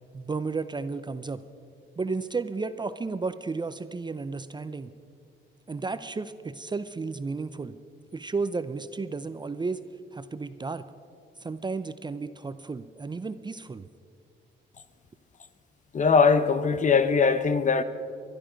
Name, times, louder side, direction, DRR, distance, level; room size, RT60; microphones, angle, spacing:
voice 1, 0.1-1.4 2.0-4.9 5.7-7.8 8.1-9.8 10.1-10.9 11.4-13.9, right 4 dB, 20° right, 0.6 m, -33 dB
voice 2, 15.9-17.8, left 5 dB, 40° left, 0.9 m, -21 dB
22.0 x 12.5 x 5.2 m
cardioid pair, 90°, 20 cm